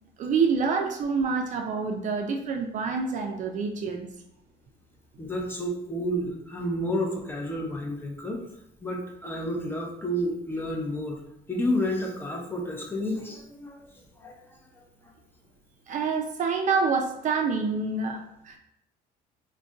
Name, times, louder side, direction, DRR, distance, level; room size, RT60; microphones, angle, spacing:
voice 1, 0.2-4.1 15.9-18.6, right 5 dB, 45° right, 3 dB, 0.4 m, -27 dB
voice 2, 5.2-8.4 8.8-11.2 11.5-13.9 14.2-14.4, equal, 15° left, -1 dB, 0.6 m, -30 dB
2.4 x 2.2 x 3.7 m, 0.75 s
cardioid pair, 110°, 17 cm